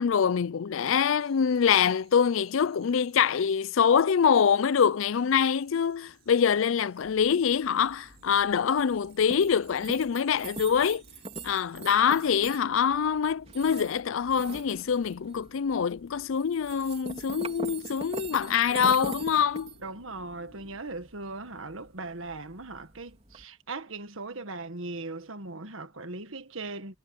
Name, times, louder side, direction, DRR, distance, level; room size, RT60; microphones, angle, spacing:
voice 1, 0.0-11.0 11.4-19.7, left 7 dB, 70° left, 0.4 m, -25 dB
sound 1, 1.2-12.6, right 13 dB, 50° right, 7.4 m, -64 dB
sound 2, 4.9-20.8, left 1 dB, 90° left, 6.2 m, -60 dB
sound 3, 7.0-23.4, right 3 dB, 30° right, 4.0 m, -43 dB
voice 2, 19.8-27.0, right 3 dB, 70° right, 1.6 m, -39 dB
head